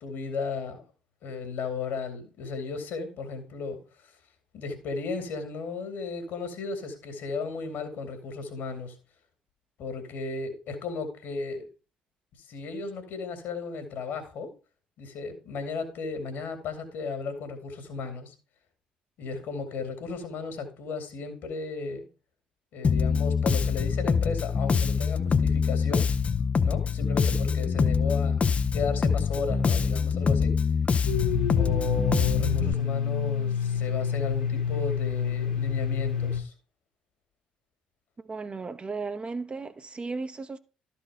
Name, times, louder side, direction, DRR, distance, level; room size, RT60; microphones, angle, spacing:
voice 1, 0.0-0.9 1.2-4.1 4.5-8.9 9.8-11.7 12.4-14.5 15.0-18.3 19.2-22.1 22.7-26.1 26.6-28.4 28.7-30.6 31.5-36.5, left 4 dB, 60° left, 2.1 m, -35 dB
Bass guitar, 22.8-32.7, left 5 dB, 35° left, 0.5 m, -25 dB
Domestic sounds home sounds, 31.1-36.4, left 8 dB, 90° left, 1.3 m, -28 dB
voice 2, 38.2-40.6, right 4 dB, 25° right, 0.7 m, -35 dB
12.5 x 4.4 x 4.8 m
figure-of-eight pair, 50°, 4 cm